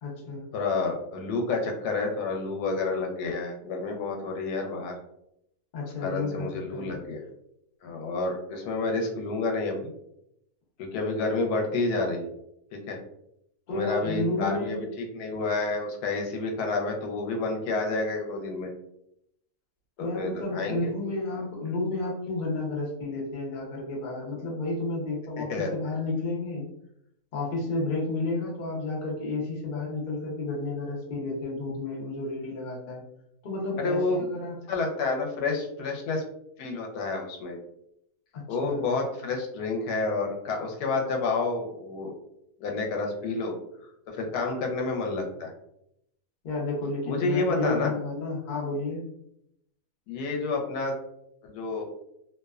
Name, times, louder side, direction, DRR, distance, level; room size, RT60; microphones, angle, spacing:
voice 1, 0.0-0.4 5.7-7.0 13.7-14.8 20.0-26.7 27.3-33.0 33.4-34.6 38.3-38.9 46.4-49.0, left 2 dB, 50° left, -3 dB, 0.5 m, -31 dB
voice 2, 0.5-4.9 6.0-7.2 7.8-9.9 10.8-12.2 12.7-13.0 13.7-18.7 20.0-20.9 25.4-25.7 33.8-34.3 34.7-36.2 36.6-37.6 38.5-42.1 42.6-43.6 44.1-45.5 47.0-47.9 50.1-50.9 51.4-51.8, left 3 dB, 80° left, 1 dB, 1.1 m, -29 dB
2.8 x 2.1 x 2.3 m, 0.78 s
omnidirectional pair, 1.7 m